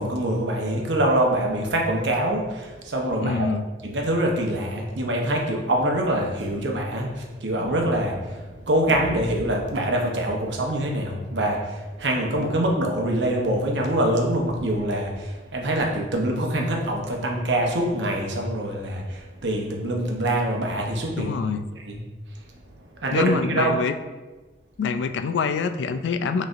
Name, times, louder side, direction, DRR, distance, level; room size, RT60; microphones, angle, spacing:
voice 1, 0.0-3.5 3.8-21.3 21.9-22.0 23.0-23.8, right 1 dB, 85° right, 0 dB, 0.8 m, -24 dB
voice 2, 3.2-3.7 21.2-21.7 23.1-23.9 24.8-26.4, left 5 dB, 85° left, 9 dB, 0.3 m, -25 dB
6.2 x 3.2 x 2.5 m, 1.2 s
head